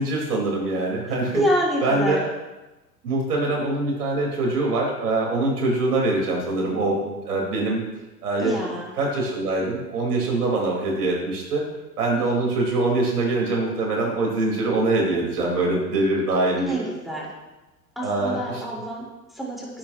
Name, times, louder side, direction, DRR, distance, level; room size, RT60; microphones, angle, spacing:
voice 1, 0.0-1.4 1.8-2.2 3.0-7.8 8.2-8.6 9.0-11.6 12.0-16.7 18.0-18.6, right 2 dB, 70° right, -2 dB, 4.8 m, -23 dB
voice 2, 1.3-2.2 8.4-8.9 12.2-12.3 16.6-17.3 17.9-19.8, equal, ahead, -5 dB, 4.8 m, -27 dB
18.5 x 9.2 x 3.1 m, 1.1 s
figure-of-eight pair, 90°, 49 cm